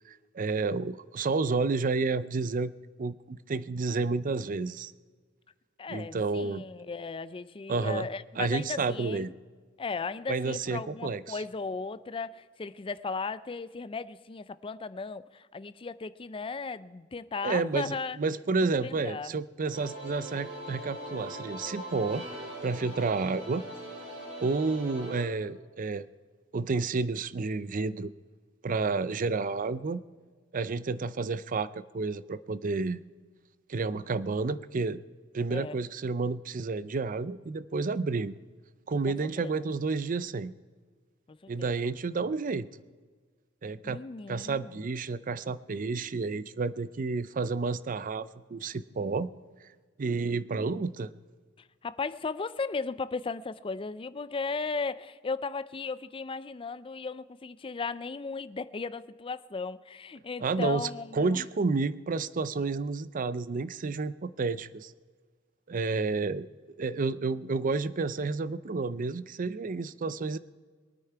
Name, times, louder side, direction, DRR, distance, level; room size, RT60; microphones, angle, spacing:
voice 1, 0.1-2.7 3.0-4.9 5.9-6.6 7.7-8.1 8.4-9.3 10.3-11.4 17.4-22.2 22.6-23.6 24.4-26.0 26.5-28.1 28.6-30.0 30.5-33.0 33.7-35.0 35.3-38.4 38.9-40.5 41.5-42.7 43.6-44.0 44.3-49.3 50.0-51.1 60.4-64.9 65.7-66.5 66.8-70.4, right 4 dB, 45° right, 0.5 m, -30 dB
voice 2, 5.8-9.3 9.8-18.2 18.6-19.3 35.5-35.8 39.1-39.6 41.3-41.9 43.8-44.9 51.8-61.5, left 4 dB, 25° left, 0.4 m, -36 dB
sound 1, 19.7-25.2, right 1 dB, 65° right, 5.0 m, -41 dB
23.0 x 9.3 x 4.6 m
head